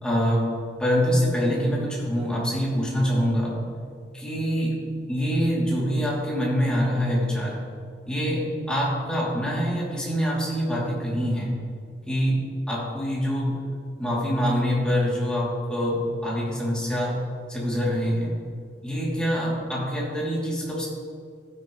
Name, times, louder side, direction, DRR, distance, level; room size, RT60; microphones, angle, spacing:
voice 1, 0.0-3.6 4.1-7.6 8.1-11.6 12.1-13.6 14.0-17.2 17.5-18.3 18.8-20.9, equal, 5° left, -6 dB, 2.9 m, -25 dB
15.0 x 10.5 x 3.2 m, 2.2 s
head